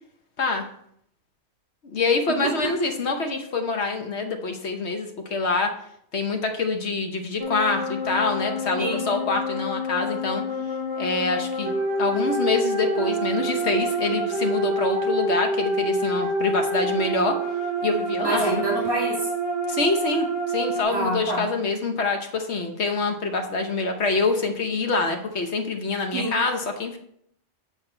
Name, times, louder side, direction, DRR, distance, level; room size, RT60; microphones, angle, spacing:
voice 1, 1.8-5.7 6.1-10.4 11.0-17.4 17.8-18.6 19.7-27.0, left 3 dB, 75° left, 5 dB, 1.2 m, -26 dB
sound 1, 7.4-20.8, right 1 dB, 35° left, 1.9 m, -27 dB
voice 2, 18.2-19.1 20.9-21.4 26.1-26.3, right 1 dB, 30° right, -6 dB, 2.3 m, -26 dB
7.9 x 4.6 x 4.3 m, 0.68 s
omnidirectional pair, 1.2 m